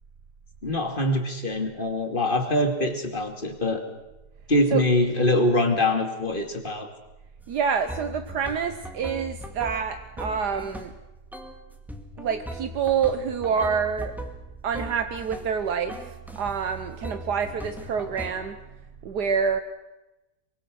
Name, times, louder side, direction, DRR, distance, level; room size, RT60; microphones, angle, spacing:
voice 1, 0.6-3.8 4.5-6.9, left 1 dB, 30° left, 5 dB, 2.6 m, -24 dB
sound 1, 7.4-7.5 7.9-11.0 11.3-11.6 11.9-15.5 15.9-16.6 17.0-18.3, equal, ahead, 2.1 m, -39 dB
voice 2, 7.5-10.9 12.2-14.1 14.6-18.6 19.0-19.6, right 6 dB, 75° right, 8 dB, 1.6 m, -27 dB
24.0 x 23.5 x 6.3 m, 1.0 s
omnidirectional pair, 1.8 m